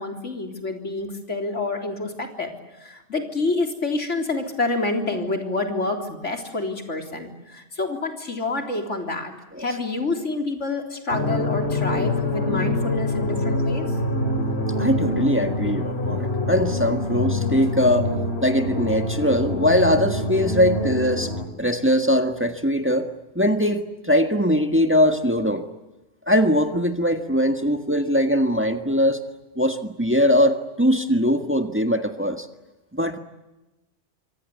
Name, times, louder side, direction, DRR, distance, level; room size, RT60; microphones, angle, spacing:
voice 1, 0.0-13.9, left 2 dB, 85° left, 3 dB, 4.0 m, -28 dB
sound 1, 11.1-21.5, left 1 dB, 60° left, 3.0 m, -25 dB
voice 2, 14.8-18.1 18.4-21.3 21.6-23.1 23.3-25.7 26.3-29.2 29.5-32.5 32.9-33.2, equal, 10° right, 6 dB, 1.7 m, -21 dB
26.5 x 24.5 x 8.4 m, 1.0 s
omnidirectional pair, 1.2 m